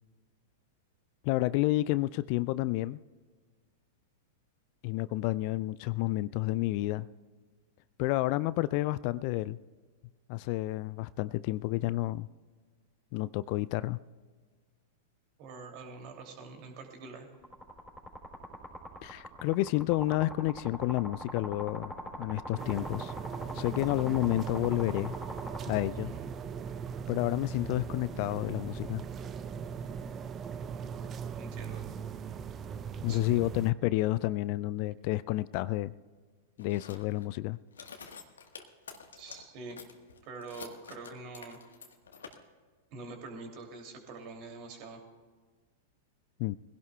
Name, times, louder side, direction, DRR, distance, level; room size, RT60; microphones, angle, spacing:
voice 1, 1.2-3.0 4.8-7.1 8.0-9.6 10.3-12.3 13.1-14.0 19.0-21.9 22.2-23.1 23.5-25.1 25.7-26.1 27.1-29.0 33.0-35.9 36.6-37.6 46.4-46.6, left 18 dB, 45° left, 18 dB, 0.3 m, -30 dB
voice 2, 15.4-17.3 25.9-26.3 31.4-31.9 33.1-33.4 39.2-39.8 40.2-41.6 42.9-45.0, right 3 dB, 45° right, 3 dB, 2.6 m, -45 dB
toy bubbling underwater, 17.4-25.6, equal, 10° left, 3.9 m, -41 dB
sound 1, 22.6-33.7, right 7 dB, 25° right, 0.6 m, -39 dB
sound 2, 36.6-37.4 37.7-39.4 39.7-42.4, left 6 dB, 70° left, 1.3 m, -48 dB
21.5 x 16.5 x 2.3 m, 1.5 s
figure-of-eight pair, 95°, 0 cm